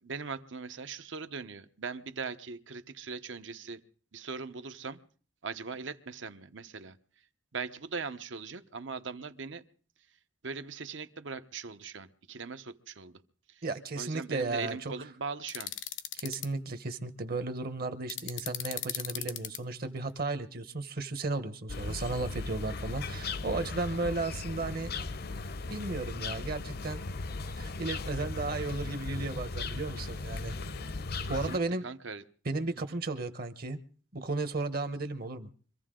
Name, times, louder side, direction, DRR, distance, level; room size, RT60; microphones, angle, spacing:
voice 1, 0.0-3.8 4.1-5.0 5.4-7.0 7.5-9.6 10.4-13.2 13.5-13.6 13.9-15.7 31.2-31.6 31.8-32.2, right 4 dB, 80° right, 10 dB, 0.9 m, -40 dB
voice 2, 13.6-14.9 16.1-24.9 25.7-27.0 27.6-30.6 31.3-31.9 32.4-33.8 34.1-35.5, right 3 dB, 55° right, 10 dB, 1.0 m, -34 dB
sound 1, 15.5-16.5 18.1-19.6, left 12 dB, 85° left, 0.9 m, -37 dB
sound 2, 21.7-31.6, left 3 dB, 55° left, 0.7 m, -37 dB
25.0 x 15.0 x 3.8 m, 0.43 s
head